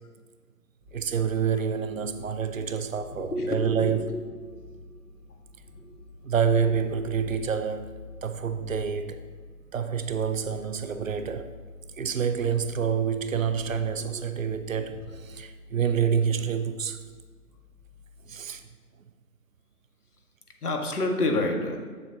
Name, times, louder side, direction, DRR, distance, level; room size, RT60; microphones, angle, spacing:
sound 1, 0.8-18.7, left 4 dB, 30° right, 1.2 m, -47 dB
voice 1, 0.9-4.1 6.2-9.2 9.7-11.5 12.0-15.0 15.2-17.0 18.3-18.6, right 7 dB, 60° right, 0.6 m, -27 dB
voice 2, 3.1-4.2 5.7-5.9 6.6-6.8 14.0-14.2 20.6-21.8, left 2 dB, 70° left, 1.7 m, -29 dB
7.9 x 7.2 x 2.8 m
figure-of-eight pair, 155°, 46 cm